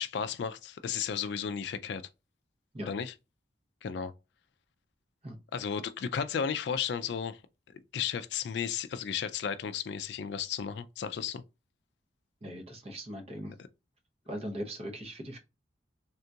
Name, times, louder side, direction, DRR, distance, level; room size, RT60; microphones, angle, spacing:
voice 1, 0.0-2.0 2.9-3.1 3.8-4.1 5.5-7.4 7.7-11.4, left 7 dB, 65° left, 0.3 m, -34 dB
voice 2, 12.4-13.5 14.3-15.4, equal, 35° right, 0.7 m, -39 dB
3.6 x 2.3 x 2.7 m
head